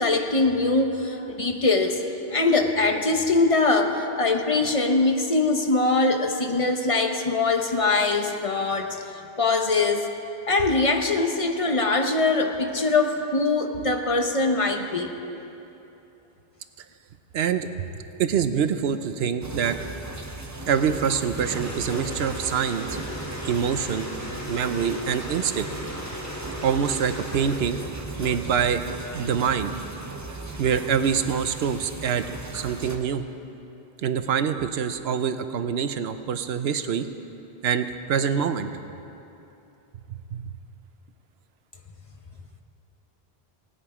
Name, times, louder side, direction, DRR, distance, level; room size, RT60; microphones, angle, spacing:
voice 1, 0.0-2.0 2.3-9.0 9.4-10.1 10.5-15.1, left 3 dB, 35° left, 4 dB, 0.9 m, -22 dB
voice 2, 17.3-17.7 18.2-19.8 20.7-22.9 23.5-24.1 24.5-25.7 26.6-27.8 28.2-28.8 29.1-29.7 30.6-32.3 32.5-33.2 34.0-37.1 37.6-38.7 40.1-40.5, right 7 dB, 75° right, 10 dB, 0.9 m, -25 dB
sound 1, 19.4-33.0, right 2 dB, 20° right, 0.6 m, -37 dB
sound 2, 21.4-27.6, left 1 dB, 15° left, 1.3 m, -37 dB
17.0 x 10.0 x 4.9 m, 2.9 s
omnidirectional pair, 1.1 m